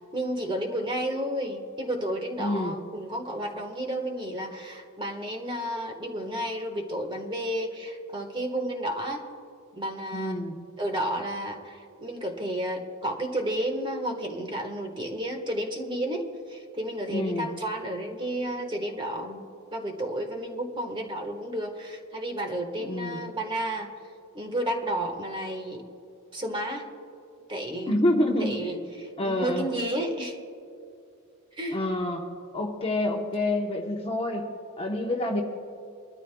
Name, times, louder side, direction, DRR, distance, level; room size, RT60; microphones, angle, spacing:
voice 1, 0.1-9.2 9.7-10.4 10.8-19.4 19.7-23.9 24.3-25.8 26.3-26.9 27.5-28.0 28.4-30.4 31.5-31.8, right 1 dB, 20° right, 3 dB, 1.4 m, -32 dB
voice 2, 2.4-2.8 10.1-10.6 17.1-17.5 22.8-23.2 27.9-28.6 29.2-29.7 31.7-32.2 32.5-34.5 34.8-35.4, left 1 dB, 25° left, 1 dB, 1.0 m, -27 dB
23.0 x 13.5 x 2.3 m, 2.5 s
head